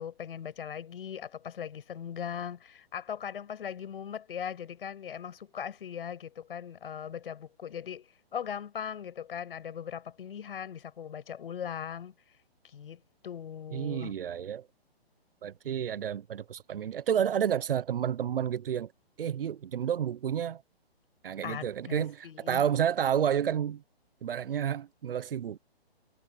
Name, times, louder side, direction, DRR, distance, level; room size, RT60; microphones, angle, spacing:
voice 1, 0.0-8.0 8.3-12.1 12.6-14.1 21.4-22.6, left 8 dB, 60° left, 6.3 m, -39 dB
voice 2, 13.7-14.7 15.4-18.9 19.2-20.6 21.2-23.8 24.2-25.6, right 9 dB, 60° right, 1.0 m, -30 dB
hypercardioid pair, 145°, 31 cm